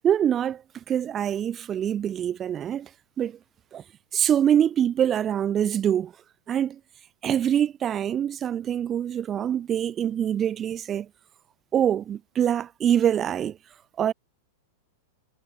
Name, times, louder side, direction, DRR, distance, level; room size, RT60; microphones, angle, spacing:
voice 1, 0.0-0.6 0.9-2.9 3.2-3.4 3.7-3.8 4.1-6.1 6.5-6.7 7.2-11.1 11.7-13.6 14.0-14.1, right 9 dB, 25° right, 1.6 m, -24 dB
supercardioid pair, 140°, 0 cm